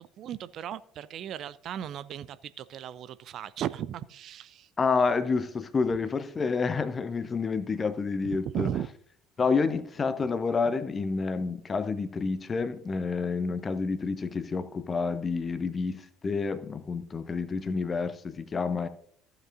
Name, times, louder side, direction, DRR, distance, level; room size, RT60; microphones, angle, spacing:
voice 1, 0.0-4.7 8.2-8.9 10.2-10.3, right 10 dB, 45° right, 0.4 m, -36 dB
voice 2, 4.8-8.7 9.4-18.9, left 4 dB, 30° left, 0.8 m, -29 dB
15.0 x 7.6 x 2.6 m
figure-of-eight pair, 60°, 0 cm